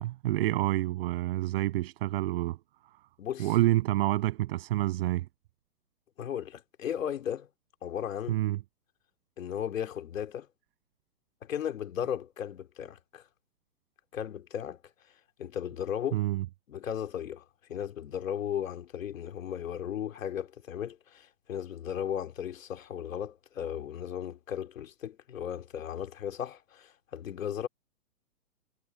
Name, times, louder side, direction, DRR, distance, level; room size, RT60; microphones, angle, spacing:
voice 1, 0.0-2.6 3.4-5.3 8.3-8.6 16.1-16.4, right 15 dB, 40° right, 7.0 m, -28 dB
voice 2, 6.2-7.5 7.8-8.4 9.4-10.5 11.4-13.2 14.1-14.8 15.4-16.2 16.7-17.4 17.7-27.7, left 9 dB, 60° left, 2.8 m, -36 dB
hypercardioid pair, 155°, 45 cm